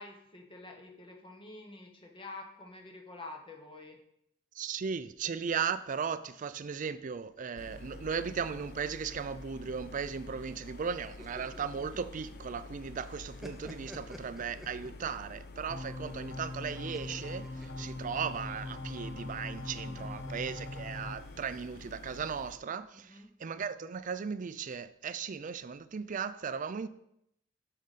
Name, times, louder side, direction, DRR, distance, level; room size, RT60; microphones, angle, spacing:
voice 1, 0.0-4.0 19.8-20.1 22.9-23.3, left 2 dB, 25° left, 1.0 m, -48 dB
voice 2, 4.6-26.9, right 6 dB, 45° right, 0.4 m, -37 dB
sound 1, 7.6-22.6, left 3 dB, 55° left, 0.6 m, -49 dB
sound 2, 11.0-12.8 13.1-15.3 16.9-18.4, equal, ahead, 0.7 m, -49 dB
sound 3, 15.7-21.2, left 2 dB, 85° left, 0.9 m, -41 dB
8.3 x 6.4 x 4.1 m
head